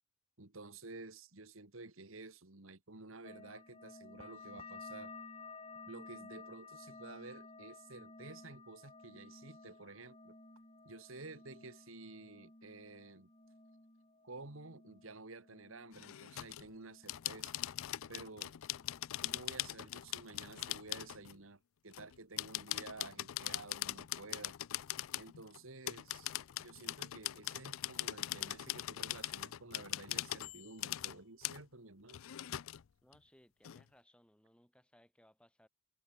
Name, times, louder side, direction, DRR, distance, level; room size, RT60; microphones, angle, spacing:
voice 1, 0.4-5.1 5.8-10.3 10.8-13.3 14.2-17.6 18.1-18.5 19.2-24.6 25.2-26.3 26.6-32.2, right 3 dB, 85° right, 2.3 m, -52 dB
sound 1, 3.2-18.4 18.7-19.5 19.8-20.5 20.9-21.3, left 3 dB, 30° left, 3.0 m, -55 dB
sound 2, 15.9-16.7 17.1-21.4 21.9-25.6 25.9-31.2 31.4-31.6 32.1-32.8 33.1-33.2 33.6-33.8, left 14 dB, 90° left, 0.4 m, -41 dB
voice 2, 33.0-35.7, equal, 5° left, 3.6 m, -66 dB
head